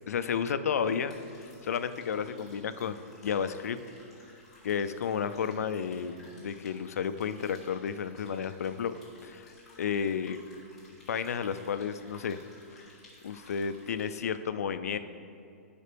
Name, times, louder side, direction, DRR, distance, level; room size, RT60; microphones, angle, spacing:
voice 1, 0.1-3.8 4.6-8.9 9.2-10.4 11.1-12.4 12.7-12.9 13.2-15.0, left 7 dB, 80° left, 11 dB, 0.4 m, -32 dB
sound 1, 0.8-14.0, left 2 dB, 5° left, 1.6 m, -57 dB
11.0 x 4.9 x 3.4 m, 2.4 s
hypercardioid pair, 175°, 8 cm